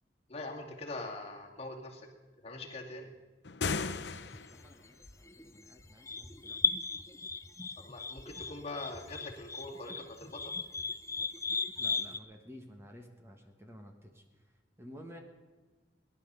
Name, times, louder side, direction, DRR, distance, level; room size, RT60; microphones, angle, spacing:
voice 1, 0.3-2.1 2.4-3.1 7.8-10.5, left 2 dB, 35° left, 1 dB, 2.2 m, -43 dB
sound 1, 3.4-4.7, left 4 dB, 75° left, 0.8 m, -35 dB
sound 2, 3.7-12.2, left 4 dB, 15° left, 0.6 m, -37 dB
voice 2, 4.5-6.6 11.8-15.2, equal, 15° right, 3 dB, 1.4 m, -52 dB
18.5 x 11.0 x 6.8 m, 1.3 s
head